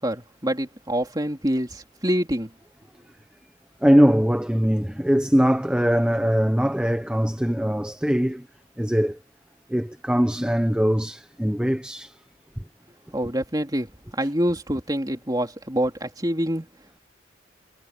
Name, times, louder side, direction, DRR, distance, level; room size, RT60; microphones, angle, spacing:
voice 1, 0.0-2.5 13.1-16.7, equal, 20° right, 3.5 m, -26 dB
voice 2, 3.8-8.5 8.8-9.2 9.7-12.2 12.6-12.7, equal, 5° right, 0.8 m, -21 dB
head